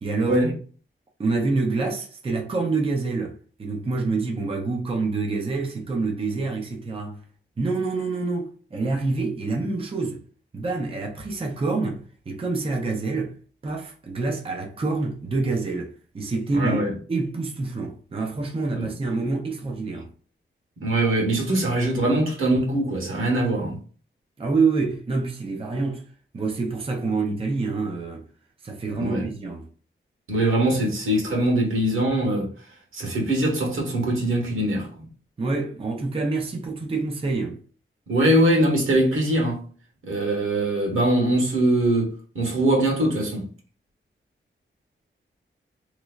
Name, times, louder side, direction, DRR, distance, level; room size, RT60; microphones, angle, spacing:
voice 1, 0.0-0.4 1.2-7.2 7.6-10.2 10.5-13.4 13.6-16.8 17.1-20.1 24.4-26.0 26.3-28.2 28.6-29.7 35.4-37.6, right 3 dB, 25° right, 0.5 m, -27 dB
voice 2, 16.5-16.9 18.7-18.9 20.8-23.8 29.0-29.3 30.3-32.5 32.9-35.1 38.1-39.6 40.0-43.5, right 1 dB, 85° right, 1.5 m, -22 dB
3.5 x 3.1 x 2.3 m
wide cardioid pair, 175°, 21 cm